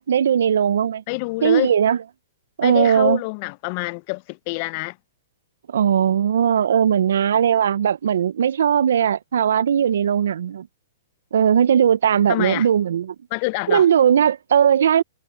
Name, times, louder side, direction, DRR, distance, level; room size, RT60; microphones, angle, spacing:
voice 1, 0.0-1.0 1.4-2.0 2.6-3.2 5.7-10.7 11.3-13.1 13.7-15.0, right 8 dB, 75° right, 0.5 m, -18 dB
voice 2, 1.1-1.7 2.6-5.0 12.3-12.7 13.3-13.9, left 27 dB, 40° left, 0.5 m, -26 dB
hypercardioid pair, 150°, 0 cm